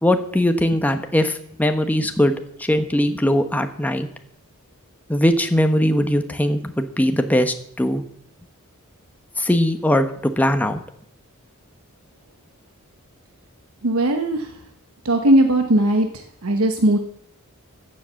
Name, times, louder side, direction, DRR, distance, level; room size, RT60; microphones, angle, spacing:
voice 1, 0.0-2.3 2.6-4.1 5.1-8.0 9.4-10.1 10.4-10.8, left 1 dB, 5° left, 7 dB, 1.0 m, -20 dB
voice 2, 13.8-14.5 15.0-16.1 16.4-17.0, right 1 dB, 75° right, 6 dB, 1.1 m, -18 dB
14.0 x 7.6 x 7.0 m, 0.68 s
head